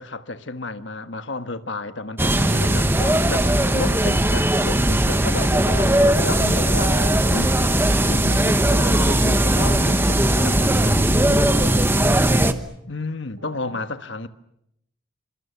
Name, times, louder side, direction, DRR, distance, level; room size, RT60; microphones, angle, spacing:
voice 1, 0.0-6.9 7.3-7.6 8.1-11.0 12.8-14.3, left 3 dB, 70° left, 1.4 m, -32 dB
sound 1, 2.2-12.5, right 1 dB, 10° right, 1.1 m, -18 dB
voice 2, 6.5-7.2 13.4-13.8, right 2 dB, 85° right, 6.0 m, -36 dB
26.5 x 26.0 x 7.2 m
head